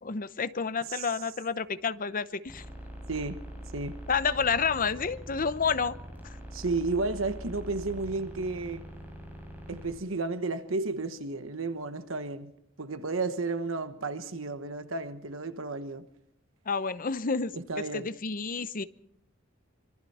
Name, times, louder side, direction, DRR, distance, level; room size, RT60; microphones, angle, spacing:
voice 1, 0.0-2.6 4.1-6.0 16.7-17.5 17.8-18.8, left 5 dB, 45° left, 0.8 m, -29 dB
sound 1, 2.5-9.9, equal, 10° right, 6.7 m, -43 dB
voice 2, 3.1-3.4 3.7-4.0 6.5-8.9 9.7-12.5 12.8-16.1 17.5-18.1, right 3 dB, 75° right, 1.2 m, -32 dB
26.0 x 24.0 x 4.3 m
head